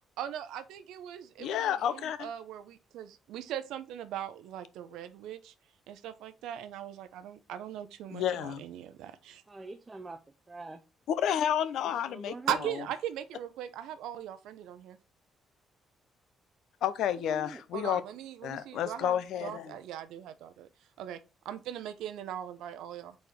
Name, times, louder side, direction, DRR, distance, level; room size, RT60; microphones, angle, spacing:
voice 1, 0.2-5.5 5.9-9.4 12.5-15.0 17.7-20.7 21.0-21.2 21.4-23.2, right 10 dB, 90° right, 0.7 m, -39 dB
voice 2, 1.4-2.3 8.1-8.6 11.1-12.3 16.8-18.0 18.4-19.8, left 10 dB, 80° left, 0.6 m, -30 dB
voice 3, 9.5-10.8 11.8-12.7 17.2-17.6, right 2 dB, 25° right, 0.6 m, -44 dB
4.7 x 4.2 x 5.0 m
cardioid pair, 90°, 0 cm